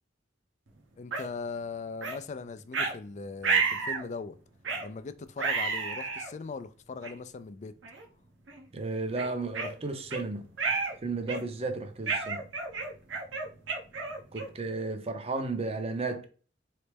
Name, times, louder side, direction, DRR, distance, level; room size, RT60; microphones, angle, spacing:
voice 1, 1.0-4.4 4.8-7.7, left 4 dB, 40° left, 0.4 m, -39 dB
sound 1, 1.1-1.3 2.0-2.2 2.7-2.9 3.4-4.0 4.6-4.9 5.4-6.3 7.0-7.1 7.8-8.0 8.5-8.6 9.2-10.2 10.6-10.9 11.3-11.6 12.1-14.6, right 4 dB, 80° right, 0.9 m, -31 dB
voice 2, 8.7-10.5 11.0-12.5 14.3-16.2, right 3 dB, 35° right, 0.6 m, -33 dB
4.0 x 3.2 x 3.3 m
head